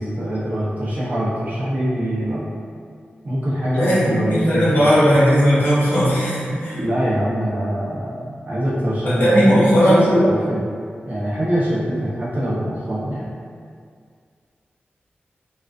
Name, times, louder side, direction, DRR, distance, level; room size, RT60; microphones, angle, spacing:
voice 1, 0.0-2.4 3.2-5.1 6.7-10.7 11.1-13.3, equal, 45° right, -10 dB, 0.7 m, -23 dB
voice 2, 3.7-6.8 9.0-10.0, equal, 75° left, -11 dB, 1.0 m, -16 dB
2.3 x 2.3 x 2.3 m, 2.1 s
wide cardioid pair, 120°, 4 cm